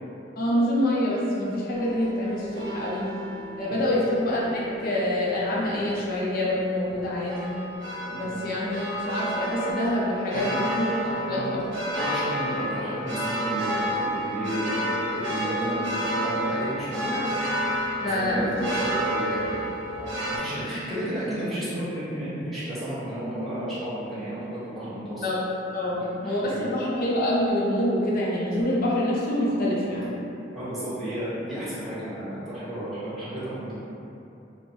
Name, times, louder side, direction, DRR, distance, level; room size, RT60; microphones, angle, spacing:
voice 1, 0.4-3.1 3.5-7.5 8.1-11.6 18.0-18.7 25.2-25.4 25.7-30.2, left 1 dB, 50° left, -6 dB, 0.5 m, -26 dB
sound 1, 1.7-20.4, equal, 80° right, 0.7 m, -31 dB
voice 2, 10.3-10.7 11.3-11.7 11.9-17.2 18.0-19.6 20.0-20.1 20.4-25.3 25.9-26.6 30.5-33.8, right 1 dB, ahead, -14 dB, 0.9 m, -33 dB
3.0 x 2.1 x 2.7 m, 2.9 s
head